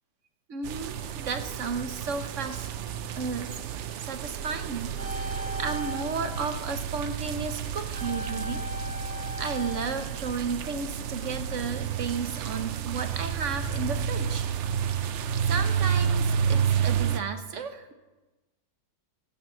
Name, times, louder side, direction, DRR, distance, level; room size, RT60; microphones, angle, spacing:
voice 1, 0.5-2.7 3.2-8.7 9.4-14.5 15.4-17.9, right 5 dB, 50° right, 8 dB, 1.0 m, -33 dB
sound 1, 0.6-17.2, right 7 dB, 75° right, 0.6 m, -30 dB
sound 2, 5.0-7.0 7.9-11.0 11.4-11.5, left 1 dB, 20° right, 3.3 m, -39 dB
12.0 x 7.5 x 7.7 m, 1.1 s
omnidirectional pair, 1.9 m